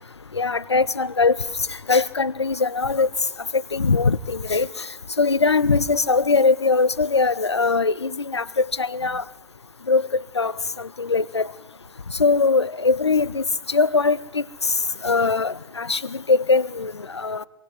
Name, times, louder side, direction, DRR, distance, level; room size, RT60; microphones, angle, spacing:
voice 1, 0.3-1.4 1.9-3.1 3.5-4.7 5.2-9.2 9.9-10.1 10.3-10.5 11.0-11.5 12.2-14.4 15.0-17.4, left 4 dB, 85° left, 0.8 m, -21 dB
25.0 x 24.0 x 4.8 m
figure-of-eight pair, 95°, 14 cm